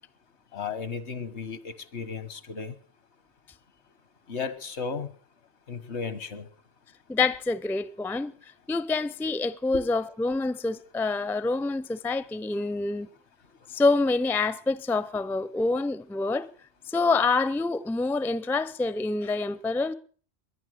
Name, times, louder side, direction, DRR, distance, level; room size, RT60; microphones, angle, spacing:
voice 1, 0.5-2.7 4.3-5.1 5.7-6.5 9.7-9.8, left 5 dB, 85° left, 1.6 m, -34 dB
voice 2, 7.1-13.1 13.7-16.5 16.9-19.9, left 3 dB, 5° left, 0.4 m, -27 dB
21.5 x 9.6 x 6.4 m
omnidirectional pair, 1.1 m